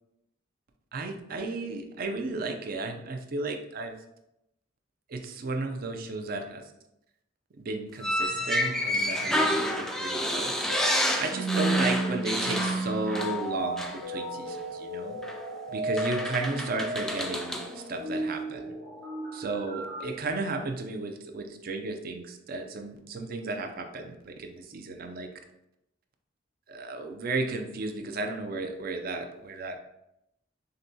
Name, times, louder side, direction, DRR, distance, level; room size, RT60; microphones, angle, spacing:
voice 1, 0.9-3.9 5.1-6.6 7.6-10.5 11.2-15.2 15.7-17.6 17.9-18.8 19.3-25.3 26.7-29.8, right 3 dB, 55° right, 5 dB, 0.5 m, -34 dB
sound 1, 8.0-13.5 13.8-14.0 15.2-15.4 16.0-17.7, left 1 dB, 5° left, 0.3 m, -29 dB
sound 2, 8.3-20.0, right 2 dB, 80° right, 1.5 m, -34 dB
6.5 x 2.2 x 2.7 m, 0.83 s
head